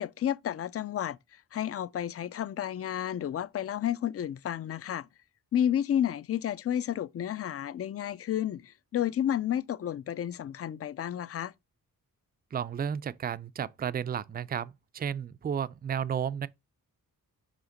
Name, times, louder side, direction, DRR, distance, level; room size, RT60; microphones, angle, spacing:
voice 1, 0.0-5.1 5.5-11.5, left 10 dB, 45° left, 0.4 m, -31 dB
voice 2, 12.5-16.5, right 8 dB, 30° right, 0.4 m, -33 dB
5.7 x 5.0 x 6.3 m
wide cardioid pair, 180°, 35 cm